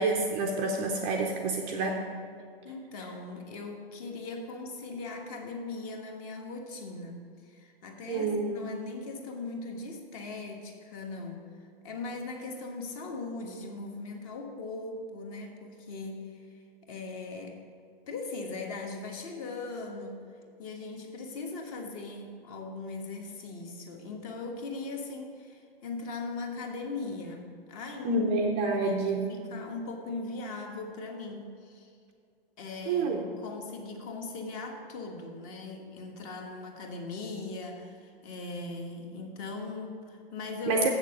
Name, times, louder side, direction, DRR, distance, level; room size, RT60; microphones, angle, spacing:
voice 1, 0.0-2.0 8.1-8.7 28.0-29.3 32.9-33.2 40.7-40.9, right 3 dB, 20° right, 1 dB, 0.6 m, -28 dB
voice 2, 2.6-11.4 11.8-17.6 18.1-20.2 20.6-31.9 32.6-40.9, left 3 dB, 35° left, 3 dB, 1.4 m, -39 dB
7.8 x 6.6 x 6.6 m, 2.3 s
hypercardioid pair, 135°, 31 cm